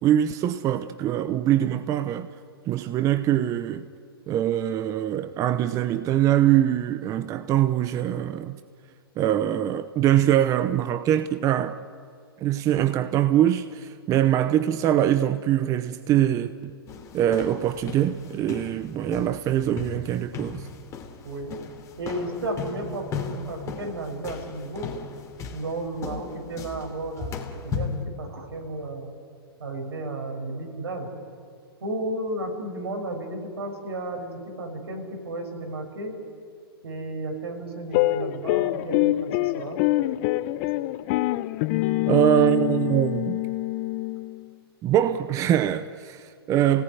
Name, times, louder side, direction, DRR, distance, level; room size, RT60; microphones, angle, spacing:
voice 1, 0.0-2.3 2.6-3.9 4.3-8.6 9.2-11.8 12.4-16.7 17.1-20.7 42.1-43.4 44.8-46.8, right 11 dB, 25° right, 0.8 m, -23 dB
sound 1, 16.9-28.1, left 6 dB, 25° left, 2.8 m, -37 dB
voice 2, 21.2-21.6 22.0-24.9 25.5-29.1 29.6-31.1 31.8-36.2 36.8-39.8, right 2 dB, 80° right, 6.3 m, -33 dB
sound 2, 37.9-44.5, left 17 dB, 40° left, 0.7 m, -25 dB
29.5 x 18.5 x 9.8 m
hypercardioid pair, 125°, 13 cm